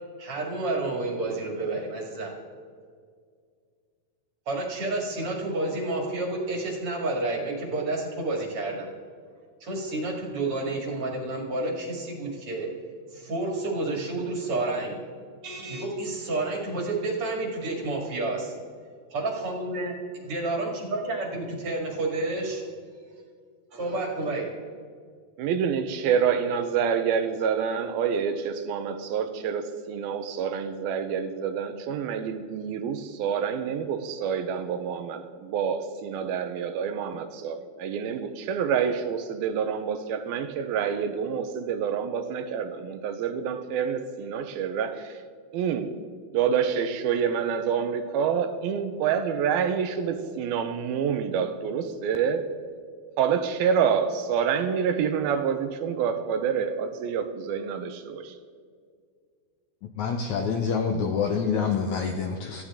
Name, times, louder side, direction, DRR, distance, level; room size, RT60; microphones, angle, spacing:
voice 1, 0.2-2.3 4.5-8.9 9.6-12.7 13.1-15.0 15.4-18.5 19.1-19.9 20.3-22.6 23.7-24.5, right 2 dB, 40° right, 0 dB, 2.7 m, -30 dB
voice 2, 25.4-45.2 45.5-45.9 46.3-52.5 53.2-58.3, right 7 dB, 85° right, 8 dB, 2.7 m, -27 dB
voice 3, 60.0-62.6, left 6 dB, 75° left, 4 dB, 1.8 m, -26 dB
18.0 x 14.5 x 3.7 m, 2.1 s
omnidirectional pair, 4.4 m